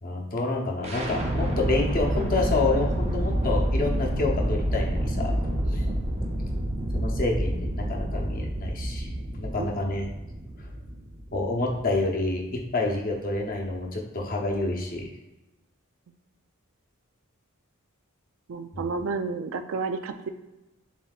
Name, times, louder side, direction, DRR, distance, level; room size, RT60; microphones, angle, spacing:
voice 1, 0.0-5.4 5.7-5.8 6.9-10.1 11.3-15.1 18.7-19.0, left 2 dB, 40° left, 0 dB, 0.8 m, -28 dB
sound 1, 0.8-12.7, equal, 30° right, 0.6 m, -28 dB
voice 2, 18.5-20.3, right 4 dB, 65° right, 9 dB, 0.4 m, -31 dB
7.2 x 2.7 x 2.4 m, 1.0 s
head